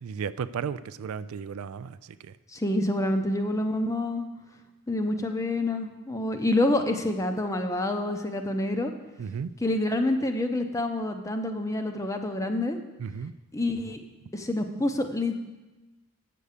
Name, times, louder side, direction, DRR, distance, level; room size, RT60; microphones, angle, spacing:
voice 1, 0.0-2.3 9.2-9.5 13.0-13.3, right 6 dB, 70° right, 15 dB, 0.3 m, -34 dB
voice 2, 2.5-4.3 4.9-8.9 9.6-12.8 13.5-14.0 14.3-15.4, left 1 dB, 15° left, 6 dB, 0.6 m, -27 dB
8.5 x 6.8 x 6.5 m, 1.1 s
head